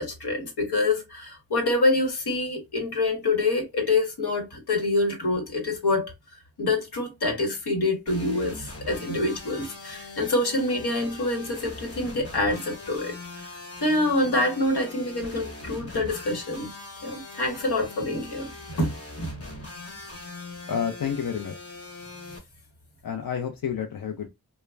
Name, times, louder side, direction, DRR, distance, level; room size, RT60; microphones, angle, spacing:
voice 1, 0.0-6.1 6.6-13.1 13.8-16.7 17.0-18.5 18.8-18.9, left 2 dB, 85° left, 1.1 m, -26 dB
sound 1, 8.1-22.4, left 2 dB, 40° left, 0.9 m, -41 dB
voice 2, 20.7-21.8 23.0-24.3, left 7 dB, 65° left, 0.6 m, -30 dB
2.3 x 2.1 x 3.1 m
cardioid pair, 50°, 37 cm